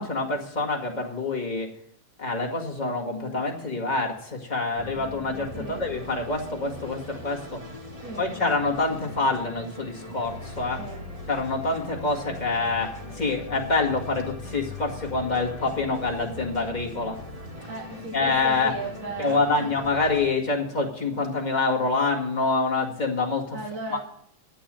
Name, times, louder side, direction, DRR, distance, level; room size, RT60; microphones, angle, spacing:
voice 1, 0.0-1.7 2.2-7.6 8.2-10.8 11.3-17.2 18.1-18.7 19.2-23.6 23.9-24.0, left 3 dB, 20° left, -1 dB, 1.4 m, -26 dB
sound 1, 4.8-20.3, left 1 dB, 20° right, 1.0 m, -40 dB
voice 2, 8.0-8.3 10.8-11.0 17.7-19.7 23.5-24.0, right 3 dB, 60° right, -2 dB, 3.1 m, -36 dB
11.0 x 8.5 x 7.6 m, 0.66 s
omnidirectional pair, 3.6 m